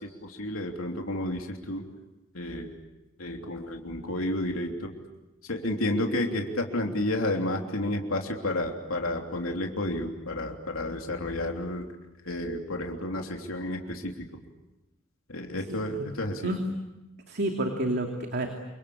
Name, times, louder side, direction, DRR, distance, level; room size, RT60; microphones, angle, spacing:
voice 1, 0.0-1.8 2.3-2.8 3.2-4.9 5.5-11.9 12.2-14.1 15.3-16.5, left 1 dB, 85° left, 2 dB, 3.2 m, -31 dB
voice 2, 15.6-16.1 16.4-16.6 17.3-18.5, right 1 dB, 55° right, 3 dB, 2.7 m, -30 dB
28.0 x 24.5 x 8.6 m, 1.0 s
head